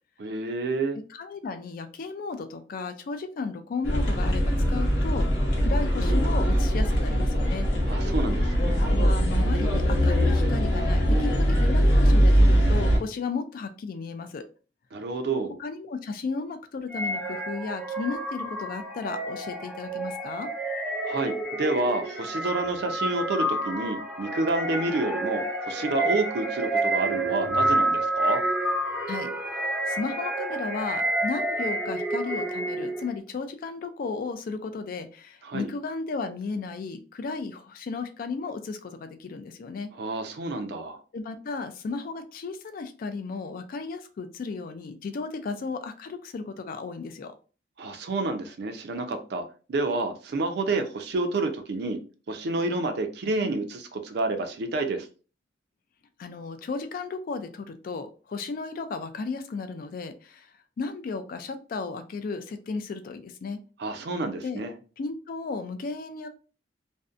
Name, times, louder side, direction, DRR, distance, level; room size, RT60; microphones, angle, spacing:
voice 1, 0.2-1.0 7.9-8.9 14.9-15.6 21.1-28.4 35.4-35.7 40.0-41.0 47.8-49.4 49.7-52.0 52.3-55.1 63.8-64.7, right 2 dB, 65° right, 6 dB, 0.4 m, -29 dB
voice 2, 1.1-5.3 5.6-7.7 8.9-14.4 15.6-20.5 29.1-39.9 41.1-47.3 56.2-63.6 64.4-64.6 65.0-66.3, left 4 dB, 50° left, 9 dB, 0.3 m, -34 dB
sound 1, 3.8-13.0, equal, 75° left, 0.7 m, -22 dB
sound 2, 16.9-33.1, right 1 dB, 5° right, 0.6 m, -29 dB
2.6 x 2.1 x 2.4 m, 0.36 s
head